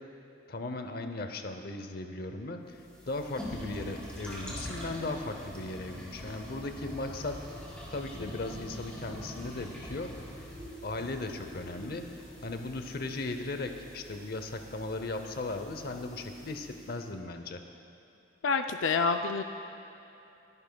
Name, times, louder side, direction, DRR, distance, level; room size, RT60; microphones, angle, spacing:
voice 1, 0.5-2.8 3.1-7.6 7.9-10.1 10.8-12.1 12.4-17.6, left 2 dB, 50° left, 6 dB, 0.7 m, -37 dB
sound 1, 2.7-17.0, equal, 5° left, 2.7 m, -44 dB
voice 2, 18.4-19.4, left 4 dB, 80° left, 6 dB, 0.4 m, -27 dB
26.5 x 11.0 x 2.3 m, 2.8 s
head